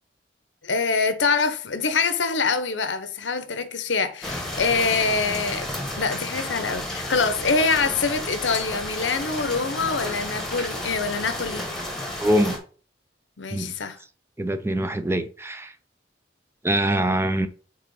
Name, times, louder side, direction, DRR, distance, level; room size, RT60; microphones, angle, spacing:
voice 1, 0.6-5.7 6.0-11.6 13.4-14.0, left 4 dB, 80° left, 0.8 m, -25 dB
sound 1, 4.2-12.6, left 1 dB, ahead, 1.2 m, -32 dB
voice 2, 12.2-12.6 13.5-13.7 14.4-15.7 16.6-17.5, right 1 dB, 15° right, 0.4 m, -23 dB
4.9 x 4.4 x 5.4 m
head